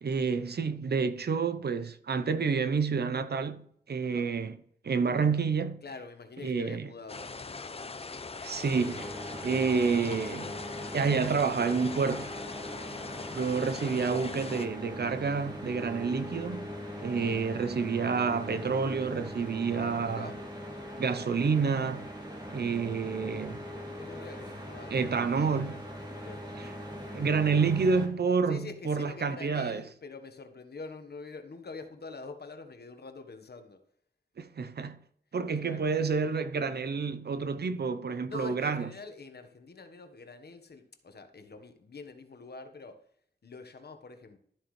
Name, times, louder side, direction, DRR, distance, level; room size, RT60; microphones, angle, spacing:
voice 1, 0.0-4.5 4.8-5.8 6.4-6.9 8.4-9.1 9.4-10.6 10.9-12.3 13.3-16.7 17.0-20.3 21.0-22.1 22.5-23.6 24.9-25.7 27.1-29.8 34.4-35.0 35.3-38.9, right 5 dB, 65° right, 0.7 m, -29 dB
voice 2, 5.8-7.7 19.7-20.4 23.9-25.8 26.1-26.4 28.5-33.8 35.6-35.9 38.3-43.0 43.4-44.4, left 4 dB, 65° left, 1.3 m, -45 dB
sound 1, 7.1-14.7, left 4 dB, 35° left, 0.6 m, -41 dB
sound 2, 8.7-28.1, equal, 25° right, 2.5 m, -41 dB
12.5 x 7.7 x 3.3 m
wide cardioid pair, 90°, 18 cm